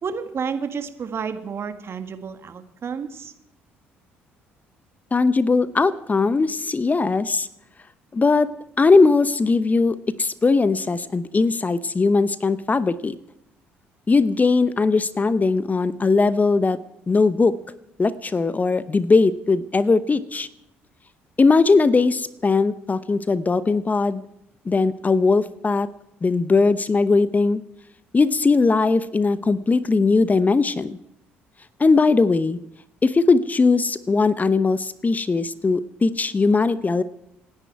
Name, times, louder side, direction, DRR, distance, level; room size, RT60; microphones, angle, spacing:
voice 1, 0.0-3.3, right 6 dB, 45° right, 8 dB, 1.8 m, -30 dB
voice 2, 5.1-7.5 8.1-8.5 8.8-13.2 14.1-16.8 17.1-17.5 18.0-20.5 21.4-24.2 24.7-25.9 26.2-27.6 28.1-31.0 31.8-32.6 33.0-37.0, left 4 dB, 25° left, 16 dB, 0.8 m, -19 dB
27.5 x 10.0 x 4.7 m, 0.81 s
hypercardioid pair, 50°, 6 cm